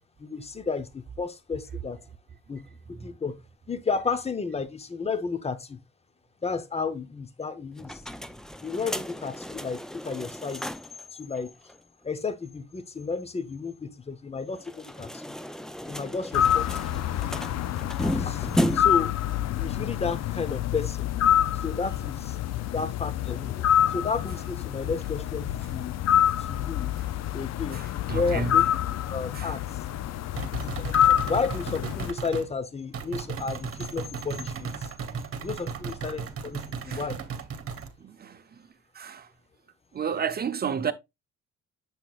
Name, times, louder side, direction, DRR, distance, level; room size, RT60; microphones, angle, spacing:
voice 1, 0.2-2.0 2.5-3.4 3.7-5.8 6.4-8.0 8.6-10.6 11.1-11.5 12.0-15.3 15.9-17.0 17.9-19.1 19.6-21.1 21.5-22.4 22.7-26.0 26.4-26.9 27.3-28.7 29.1-29.6 30.6-34.9 35.4-37.2, left 4 dB, 20° left, 0.8 m, -32 dB
sound 1, 7.8-11.0 11.3-11.4 11.7-11.8 14.5-19.1, equal, ahead, 0.4 m, -33 dB
sound 2, 16.3-32.1, left 10 dB, 60° left, 0.5 m, -27 dB
voice 2, 27.7-28.6 29.3-29.5 35.1-35.2 36.9-37.1 38.0-38.6 38.9-39.3 39.9-40.9, right 6 dB, 30° right, 0.8 m, -32 dB
sound 3, 30.4-32.5 32.9-37.9, right 6 dB, 50° right, 1.2 m, -36 dB
7.0 x 5.9 x 2.4 m
cardioid pair, 90°, 30 cm